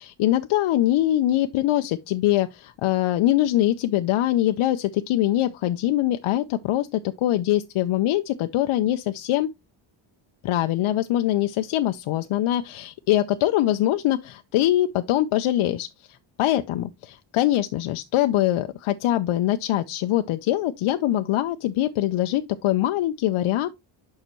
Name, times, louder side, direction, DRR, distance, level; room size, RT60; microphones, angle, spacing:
voice 1, 0.0-9.5 10.4-15.9 16.4-23.7, left 13 dB, 80° left, 0.6 m, -23 dB
6.6 x 5.7 x 3.0 m
wide cardioid pair, 135°, 49 cm